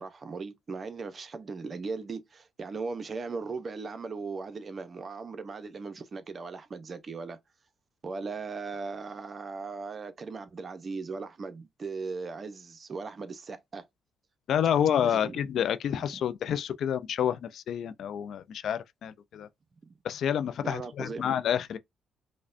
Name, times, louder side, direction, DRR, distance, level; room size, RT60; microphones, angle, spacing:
voice 1, 0.0-7.4 8.0-13.8 15.0-15.4 16.0-16.2 20.6-21.2, right 4 dB, 45° right, 0.6 m, -38 dB
voice 2, 14.5-19.5 20.0-21.8, left 9 dB, 70° left, 0.3 m, -29 dB
4.9 x 2.1 x 2.5 m
supercardioid pair, 70°, 0 cm